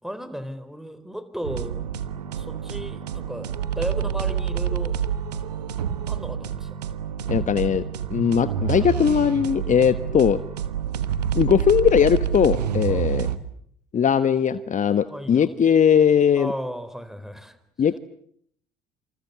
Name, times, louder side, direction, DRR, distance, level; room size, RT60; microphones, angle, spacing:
voice 1, 0.0-1.8 2.3-3.5 3.8-5.0 6.1-6.8 8.6-8.9 12.9-13.1 15.1-15.5 16.4-17.6, equal, ahead, 12 dB, 4.3 m, -35 dB
sound 1, 1.4-13.4, right 8 dB, 85° right, 1.3 m, -28 dB
voice 2, 7.3-7.8 8.1-10.4 11.3-13.3 13.9-16.5 17.8-18.0, left 8 dB, 40° left, 13 dB, 1.2 m, -19 dB
28.0 x 28.0 x 7.0 m, 0.67 s
hypercardioid pair, 55°, 20 cm